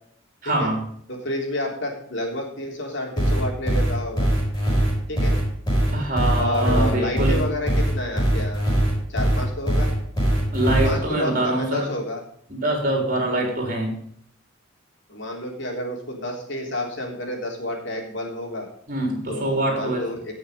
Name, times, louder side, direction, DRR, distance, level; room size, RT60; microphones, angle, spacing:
voice 1, 0.4-0.8 5.9-7.4 10.5-11.9 12.5-14.0 18.9-20.0, right 1 dB, 40° right, 1 dB, 4.0 m, -24 dB
voice 2, 1.1-4.3 5.1-5.4 6.4-8.7 9.1-9.9 10.8-12.2 15.1-18.7 19.3-20.3, left 1 dB, 55° left, 1 dB, 3.4 m, -30 dB
sound 1, 3.2-10.9, equal, 15° left, 6.5 m, -21 dB
17.5 x 6.4 x 5.3 m, 0.66 s
head